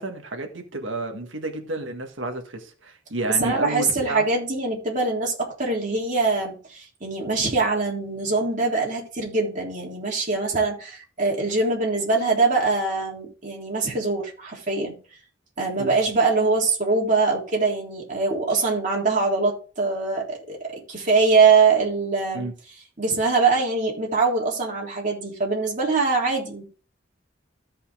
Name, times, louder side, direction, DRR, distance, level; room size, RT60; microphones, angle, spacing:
voice 1, 0.0-4.3 15.8-15.9 22.3-22.5, right 2 dB, 75° right, 1.7 m, -31 dB
voice 2, 3.3-15.0 15.6-22.5 23.0-26.6, right 4 dB, 40° right, 3.4 m, -23 dB
14.0 x 5.5 x 3.7 m
head